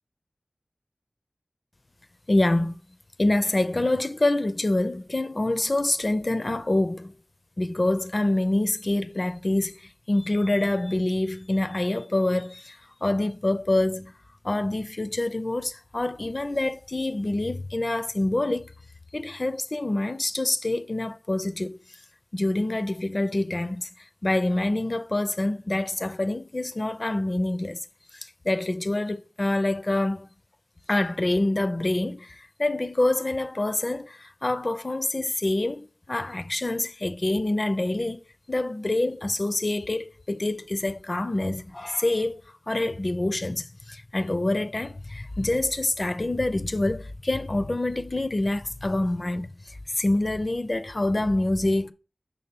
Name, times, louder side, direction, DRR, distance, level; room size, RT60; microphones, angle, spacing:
voice 1, 2.3-2.8 3.2-7.2 7.6-14.2 14.4-18.7 19.1-21.8 22.3-23.9 24.2-27.8 28.2-30.3 30.9-38.2 38.5-42.4 42.7-51.9, left 2 dB, 45° left, 0.5 m, -26 dB
5.5 x 3.7 x 5.8 m
wide cardioid pair, 65°, 0 cm